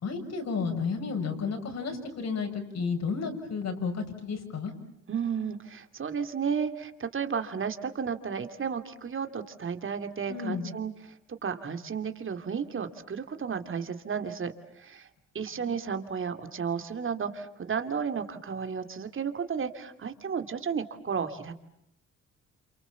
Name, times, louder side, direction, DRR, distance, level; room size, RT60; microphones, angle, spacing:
voice 1, 0.0-4.7 10.3-10.7, left 5 dB, 60° left, 5 dB, 6.5 m, -32 dB
voice 2, 5.1-15.1 15.3-21.5, right 6 dB, 40° right, 8 dB, 2.8 m, -33 dB
29.0 x 28.0 x 7.2 m, 0.77 s
cardioid pair, 90°, 30 cm